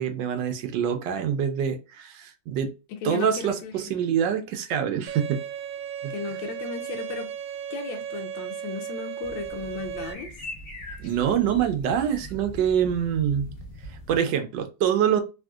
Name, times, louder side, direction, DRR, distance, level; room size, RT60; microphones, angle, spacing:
voice 1, 0.0-2.7 3.0-5.4 6.0-6.1 11.0-13.5 13.9-15.2, right 8 dB, 75° right, 1.2 m, -25 dB
voice 2, 2.9-3.9 6.1-7.3 7.7-10.3, left 5 dB, 80° left, 1.4 m, -35 dB
Bowed string instrument, 5.1-10.1, right 8 dB, 90° right, 1.4 m, -35 dB
sound 1, 9.2-14.2, equal, 45° left, 0.8 m, -41 dB
3.5 x 2.5 x 2.3 m
omnidirectional pair, 2.1 m